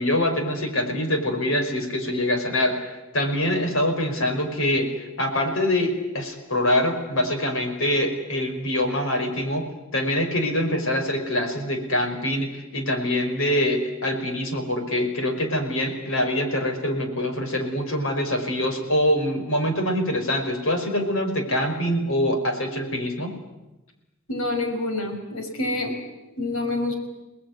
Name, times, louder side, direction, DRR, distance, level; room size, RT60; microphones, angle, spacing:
voice 1, 0.0-9.7 9.9-23.3, left 1 dB, 65° left, 5 dB, 5.4 m, -24 dB
voice 2, 24.3-25.9 26.4-26.9, left 2 dB, 85° left, 5 dB, 5.9 m, -27 dB
30.0 x 19.5 x 9.7 m, 1.0 s
head